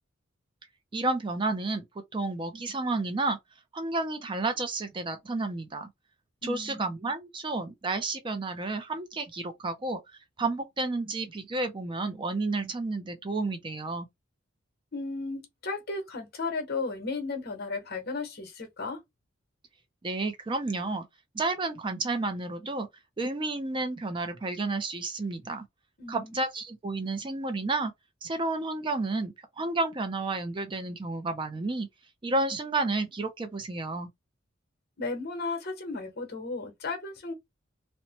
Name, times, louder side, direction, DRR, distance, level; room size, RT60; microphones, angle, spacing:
voice 1, 0.9-1.8 2.1-3.4 3.7-5.9 6.4-10.0 10.4-14.1 20.0-21.0 21.3-22.9 23.2-25.7 26.1-27.9 28.2-31.9 32.2-34.1, right 3 dB, 25° right, 0.4 m, -31 dB
voice 2, 6.4-6.9 14.9-19.0 26.0-26.3 35.0-37.3, left 3 dB, 50° left, 1.0 m, -34 dB
2.8 x 2.1 x 2.9 m
head